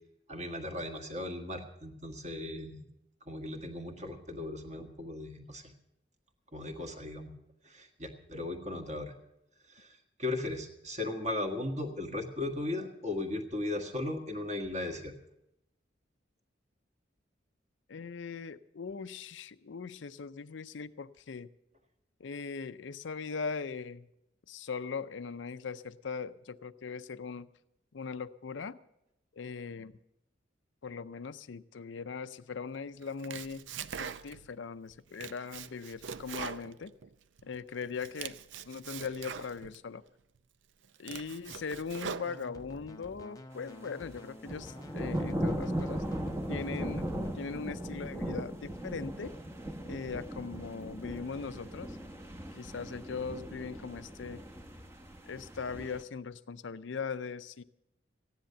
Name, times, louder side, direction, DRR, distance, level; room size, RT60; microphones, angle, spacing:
voice 1, 0.3-2.8 3.2-5.7 6.5-7.3 7.6-9.1 9.7-15.1, left 2 dB, 35° right, 3 dB, 1.7 m, -37 dB
voice 2, 17.9-21.5 22.2-24.1 24.5-27.5 27.9-28.8 29.3-29.9 30.8-33.7 34.0-36.9 37.4-38.4 38.7-40.0 41.0-46.0 46.5-47.1 47.3-49.3 49.8-52.0 52.5-54.4 55.3-57.6, left 5 dB, 75° left, 14 dB, 0.5 m, -40 dB
Domestic sounds home sounds, 33.0-34.5 34.9-37.4 37.8-39.8 40.3-40.4 40.8-42.8, right 7 dB, 75° right, 0.5 m, -43 dB
sound 1, 42.2-47.3, left 1 dB, 20° left, 0.6 m, -50 dB
sound 2, 44.4-56.0, right 1 dB, 15° right, 0.9 m, -38 dB
15.0 x 10.5 x 6.7 m, 0.82 s
head